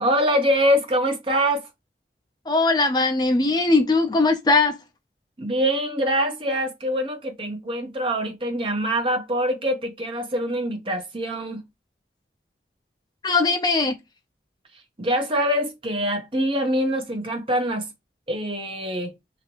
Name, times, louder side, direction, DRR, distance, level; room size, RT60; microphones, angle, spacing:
voice 1, 0.0-1.7 5.4-11.6 15.0-17.9 18.3-19.1, equal, 30° right, 0.7 m, -24 dB
voice 2, 2.5-4.8 13.2-14.0, left 3 dB, 25° left, 0.4 m, -20 dB
2.9 x 2.8 x 2.9 m
head